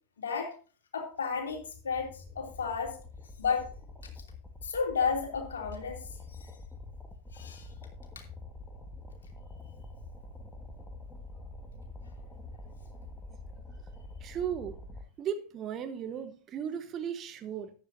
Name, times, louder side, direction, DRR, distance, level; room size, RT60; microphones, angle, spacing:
voice 1, 0.2-0.5 0.9-3.0 3.4-3.7 4.6-6.0 6.4-6.5 7.3-7.7, left 5 dB, 65° left, 3.0 m, -32 dB
sound 1, 1.3-15.0, left 2 dB, 5° left, 1.8 m, -46 dB
voice 2, 14.2-14.8 15.2-17.7, right 8 dB, 30° right, 1.1 m, -36 dB
14.0 x 10.0 x 2.7 m
figure-of-eight pair, 90°, 0 cm